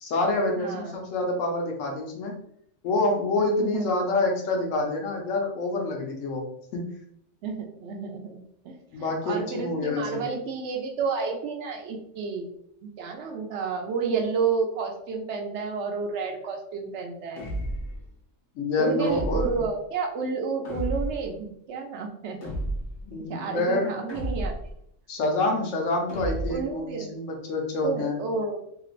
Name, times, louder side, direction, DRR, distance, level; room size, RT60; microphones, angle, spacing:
voice 1, 0.0-2.3 2.8-6.8 8.9-10.2 18.5-19.6 23.1-23.9 25.1-28.2, left 2 dB, 85° left, 1 dB, 1.1 m, -27 dB
voice 2, 0.6-1.1 3.4-3.9 7.4-12.5 12.8-17.4 18.8-22.4 23.3-24.5 26.5-27.1 27.8-28.6, right 5 dB, 70° right, 3 dB, 0.8 m, -30 dB
sound 1, 17.4-18.0 19.0-19.7 20.6-21.3 22.4-23.0 24.1-24.8 26.1-26.7, right 1 dB, 55° left, 1.1 m, -31 dB
3.1 x 2.9 x 2.4 m, 0.72 s
omnidirectional pair, 1.3 m